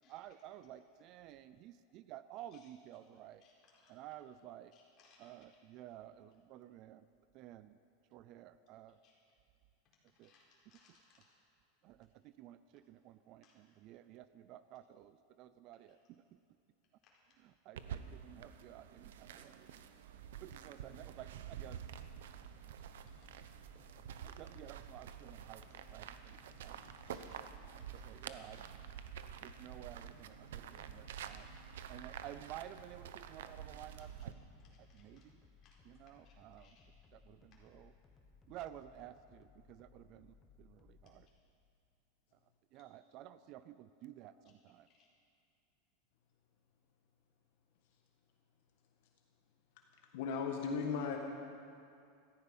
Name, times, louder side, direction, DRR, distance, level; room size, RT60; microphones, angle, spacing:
voice 1, 0.1-3.4 3.9-4.7 5.2-7.1 7.3-7.8 8.1-9.0 10.2-10.3 10.7-10.8 11.8-16.2 17.4-19.7 20.4-21.8 24.2-27.5 27.9-28.6 29.4-31.5 31.9-34.3 34.8-35.4 35.8-36.8 37.1-37.9 38.5-41.3 42.7-44.9, right 12 dB, 35° right, 14 dB, 0.4 m, -53 dB
voice 2, 3.4-3.9 4.7-5.3 9.0-9.1 10.1-11.3 13.4-13.5 23.7-23.8 27.1-27.4 27.8-28.1 34.0-34.3 34.6-35.2 35.6-35.8 36.2-36.9 37.5-37.6 42.8-42.9, left 5 dB, 30° left, -4 dB, 4.4 m, -69 dB
sound 1, 17.8-34.3, right 8 dB, 90° right, 0.8 m, -49 dB
sound 2, 21.8-41.3, left 5 dB, 15° left, 1.2 m, -64 dB
voice 3, 50.1-51.2, left 5 dB, 60° left, 2 dB, 1.4 m, -36 dB
16.5 x 14.5 x 5.5 m, 2.4 s
supercardioid pair, 165°, 0 cm